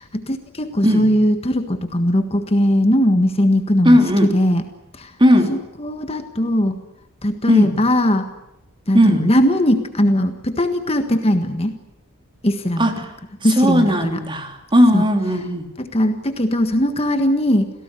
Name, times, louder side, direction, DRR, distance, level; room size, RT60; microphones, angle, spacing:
voice 1, 0.0-4.6 4.9-5.1 5.5-6.8 7.2-8.3 8.9-11.8 12.4-13.0 13.4-14.2 14.9-15.1 15.8-17.7, equal, 25° left, 7 dB, 1.5 m, -19 dB
voice 2, 3.8-4.3 5.2-5.5 7.5-7.7 8.9-9.3 12.8-13.0 13.6-15.6, equal, 20° right, 5 dB, 3.2 m, -16 dB
27.5 x 17.5 x 9.8 m, 0.88 s
head